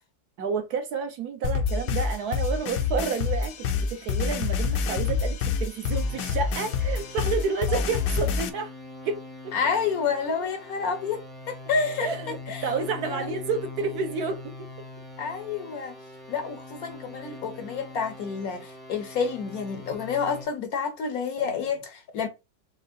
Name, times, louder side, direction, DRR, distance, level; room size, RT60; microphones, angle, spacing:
voice 1, 0.4-8.7 9.0-9.2 12.0-14.5 21.4-21.6, right 5 dB, 65° right, 1.2 m, -30 dB
sound 1, 1.4-8.5, left 6 dB, 85° left, 1.4 m, -27 dB
sound 2, 5.9-20.5, left 2 dB, ahead, 0.7 m, -43 dB
voice 2, 9.5-12.7 13.0-13.4 15.2-16.0 16.3-22.3, left 5 dB, 65° left, 1.0 m, -29 dB
5.0 x 2.9 x 2.6 m
omnidirectional pair, 1.9 m